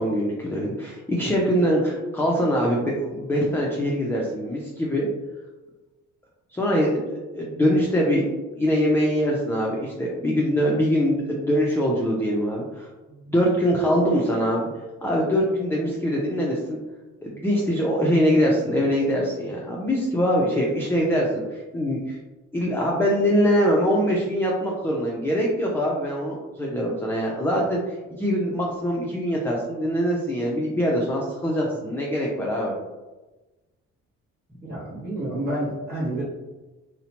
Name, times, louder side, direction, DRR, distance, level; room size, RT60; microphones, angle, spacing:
voice 1, 0.0-5.1 6.5-8.3 8.6-12.9 13.3-14.7 15.0-16.8 17.2-22.2 22.5-32.7, equal, 10° left, -3 dB, 0.4 m, -23 dB
voice 2, 34.6-36.2, right 1 dB, 30° right, -8 dB, 0.8 m, -29 dB
2.7 x 2.1 x 2.8 m, 1.1 s
cardioid pair, 90°, 30 cm